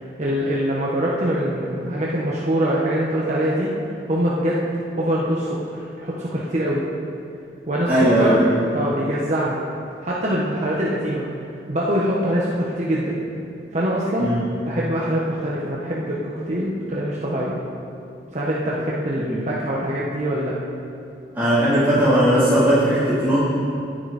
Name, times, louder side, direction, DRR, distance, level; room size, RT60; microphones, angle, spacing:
voice 1, 0.2-3.7 4.1-4.6 4.9-6.8 7.7-8.5 8.7-9.6 10.0-11.2 11.7-13.2 13.7-14.3 14.6-17.6 18.3-20.6, equal, 45° right, -6 dB, 1.6 m, -23 dB
voice 2, 7.9-8.6 14.2-14.4 19.3-19.4 21.3-23.4, right 1 dB, 10° right, -14 dB, 3.9 m, -18 dB
24.0 x 9.8 x 4.5 m, 2.6 s
head